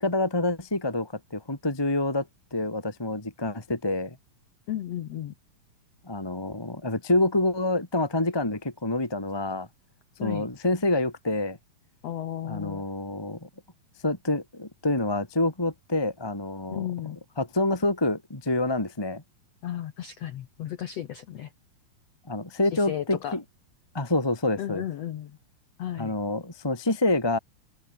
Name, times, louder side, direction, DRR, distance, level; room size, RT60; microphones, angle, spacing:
voice 1, 0.0-4.2 6.0-9.7 10.2-11.6 12.4-13.5 14.0-16.9 17.4-19.2 22.3-23.4 23.9-24.8 26.0-27.4, left 2 dB, 10° left, 1.8 m, -27 dB
voice 2, 4.7-5.3 10.2-10.5 12.0-12.9 16.7-17.2 19.6-21.5 22.7-23.4 24.6-25.4 25.8-26.1, left 11 dB, 65° left, 1.6 m, -34 dB
omnidirectional pair, 4.2 m